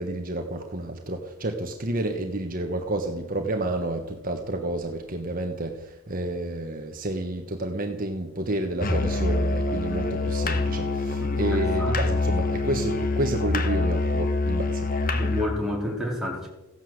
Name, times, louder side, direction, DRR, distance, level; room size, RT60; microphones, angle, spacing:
voice 1, 0.0-14.9, right 1 dB, 40° right, 4 dB, 1.3 m, -30 dB
Musical instrument, 8.8-15.6, left 2 dB, 40° left, 1.4 m, -25 dB
voice 2, 11.2-12.0 15.1-16.5, left 1 dB, ahead, -3 dB, 4.4 m, -30 dB
16.0 x 11.0 x 7.9 m, 1.0 s
head